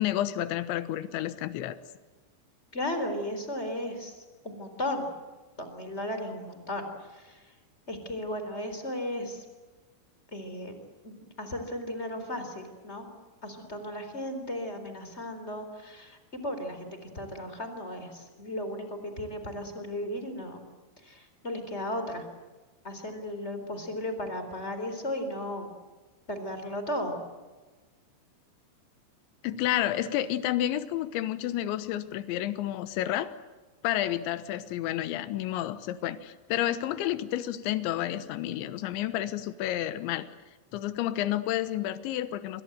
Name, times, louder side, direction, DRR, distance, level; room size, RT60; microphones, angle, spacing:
voice 1, 0.0-1.8 29.4-33.3 33.8-40.3 40.7-42.6, left 13 dB, 80° left, 13 dB, 3.4 m, -30 dB
voice 2, 2.7-5.1 5.6-7.4 7.9-9.4 10.3-10.8 11.0-13.1 13.4-20.6 21.0-22.2 22.8-25.7 26.3-27.2, left 1 dB, 15° left, 7 dB, 3.6 m, -35 dB
27.0 x 24.0 x 8.0 m, 1.3 s
omnidirectional pair, 5.5 m